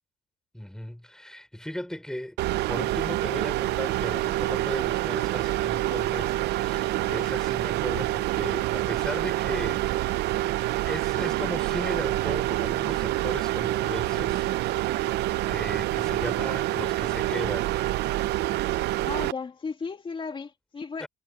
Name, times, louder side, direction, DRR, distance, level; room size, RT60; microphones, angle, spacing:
voice 1, 0.5-2.4 2.7-10.3 10.8-17.8 18.6-18.8 21.0-21.1, left 1 dB, 5° left, 4.5 m, -37 dB
sound 1, 2.4-19.3, right 16 dB, 80° right, 0.7 m, -27 dB
voice 2, 19.0-21.1, left 4 dB, 30° left, 2.2 m, -35 dB
cardioid pair, 110°, 17 cm